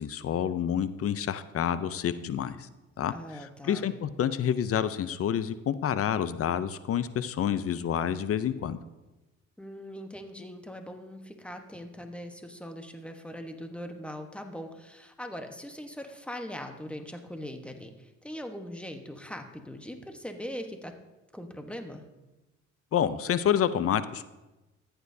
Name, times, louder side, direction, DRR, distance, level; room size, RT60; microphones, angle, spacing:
voice 1, 0.0-2.7 3.0-3.1 3.6-8.8 22.9-24.2, left 9 dB, 50° left, 14 dB, 0.6 m, -28 dB
voice 2, 3.1-3.9 9.6-20.9 21.3-22.0, equal, 5° left, 5 dB, 1.1 m, -41 dB
14.0 x 8.9 x 2.7 m, 1.1 s
cardioid pair, 90°, 30 cm